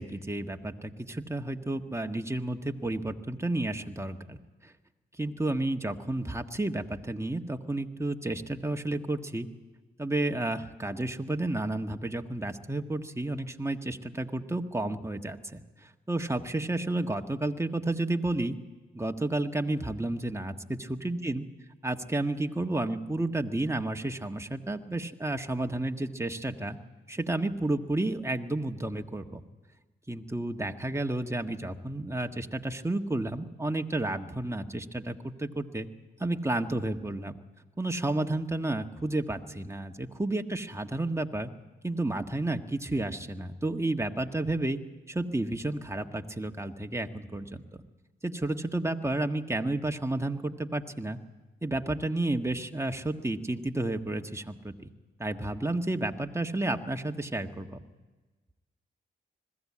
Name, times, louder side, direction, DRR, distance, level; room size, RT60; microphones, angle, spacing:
voice 1, 0.0-4.4 4.6-4.7 5.2-9.5 10.0-18.6 18.9-21.4 21.8-26.8 27.1-29.4 30.1-35.9 36.2-37.3 37.8-41.5 41.8-44.8 45.1-47.6 48.2-51.2 51.6-54.9 55.2-57.8, right 2 dB, 15° right, 5 dB, 1.5 m, -31 dB
20.5 x 15.0 x 8.6 m, 1.3 s
supercardioid pair, 50°, 21 cm